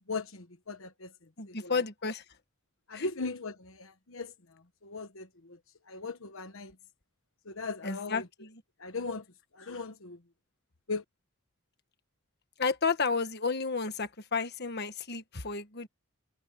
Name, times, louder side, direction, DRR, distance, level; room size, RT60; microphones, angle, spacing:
voice 1, 0.1-1.1 1.5-1.8 2.9-4.3 4.8-5.6 5.9-6.7 7.4-8.3 8.8-9.2 9.5-10.2 10.9-11.0, left 3 dB, 65° left, 1.3 m, -38 dB
voice 2, 1.4-2.2 2.9-3.0 7.8-8.6 12.6-15.9, left 4 dB, 50° left, 1.5 m, -32 dB
head